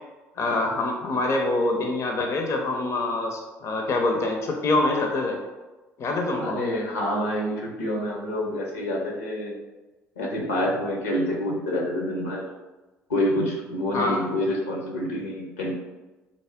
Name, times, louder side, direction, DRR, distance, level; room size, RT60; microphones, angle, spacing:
voice 1, 0.4-5.4 6.0-6.6 13.9-14.2, left 2 dB, 45° left, 2 dB, 0.5 m, -25 dB
voice 2, 6.4-9.5 10.2-12.5 13.1-15.7, left 1 dB, 80° left, -1 dB, 0.7 m, -27 dB
3.5 x 2.0 x 3.5 m, 1.2 s
figure-of-eight pair, 55°, 7 cm